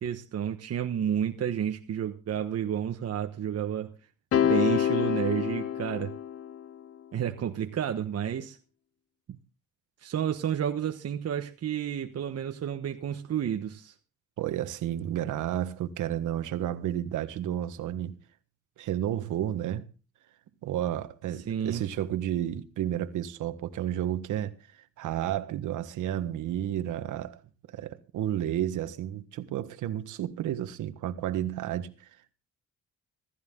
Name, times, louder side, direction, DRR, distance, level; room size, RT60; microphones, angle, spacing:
voice 1, 0.0-3.9 4.3-6.1 7.1-8.6 9.3-9.4 10.0-13.9 21.5-21.8, right 9 dB, 55° right, 1.2 m, -31 dB
sound 1, 4.3-6.7, left 10 dB, 50° left, 0.7 m, -27 dB
voice 2, 14.4-18.2 18.8-19.8 20.6-27.4 27.7-32.1, right 11 dB, 80° right, 1.5 m, -32 dB
15.5 x 15.0 x 3.8 m
cardioid pair, 90°, 30 cm